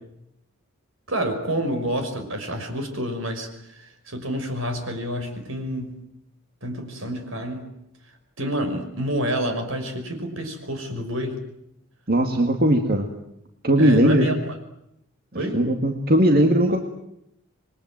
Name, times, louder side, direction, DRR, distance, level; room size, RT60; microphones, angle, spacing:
voice 1, 1.1-6.0 6.6-7.7 8.4-11.4 13.8-14.6 15.4-15.6, equal, 70° right, 6 dB, 5.8 m, -28 dB
voice 2, 12.1-13.1 13.6-14.3 15.3-16.8, right 1 dB, 45° right, 4 dB, 2.1 m, -19 dB
27.5 x 22.5 x 9.2 m, 0.80 s
head